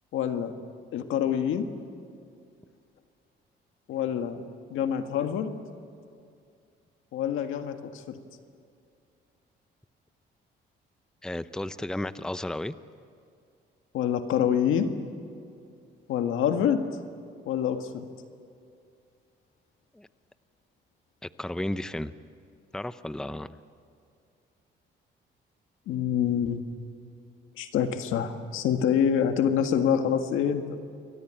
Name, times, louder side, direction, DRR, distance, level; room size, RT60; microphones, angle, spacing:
voice 1, 0.1-0.5 0.9-1.7 3.9-4.4 4.7-5.5 7.1-8.2 13.9-14.9 16.1-16.8 17.5-18.1 25.9-26.6 27.6-30.6, left 8 dB, 85° left, 7 dB, 1.8 m, -26 dB
voice 2, 11.2-12.7 19.9-20.1 21.2-22.1 22.7-23.6, left 1 dB, 5° left, 13 dB, 0.7 m, -33 dB
28.5 x 23.0 x 9.0 m, 2.4 s
cardioid pair, 90°, 20 cm